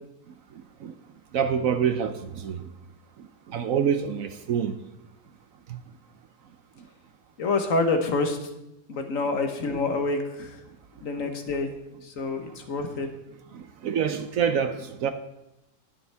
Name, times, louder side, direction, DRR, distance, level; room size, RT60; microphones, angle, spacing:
voice 1, 1.3-2.7 3.2-4.8 5.7-5.8 9.2-9.3 12.9-13.0 13.5-15.1, right 7 dB, 65° right, 9 dB, 0.9 m, -27 dB
voice 2, 7.4-8.4 8.9-10.6 11.0-11.7 12.0-13.1, left 3 dB, 55° left, 5 dB, 1.4 m, -27 dB
19.5 x 6.9 x 3.4 m, 0.91 s
omnidirectional pair, 1.7 m